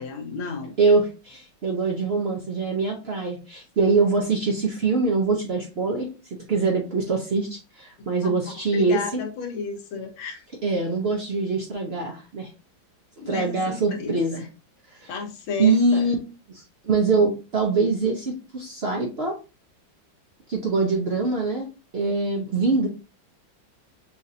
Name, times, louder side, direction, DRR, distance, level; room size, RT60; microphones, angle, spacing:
voice 1, 0.0-0.7 8.2-8.4 8.7-10.4 13.2-14.5 15.1-16.1, left 5 dB, 90° left, 3 dB, 1.8 m, -33 dB
voice 2, 0.8-6.1 6.5-9.2 10.6-12.5 13.2-14.3 15.0-15.1 15.6-16.1 16.5-19.4 20.5-21.7 21.9-22.9, right 3 dB, 70° right, 1 dB, 0.6 m, -23 dB
6.1 x 2.5 x 2.7 m, 0.31 s
omnidirectional pair, 2.1 m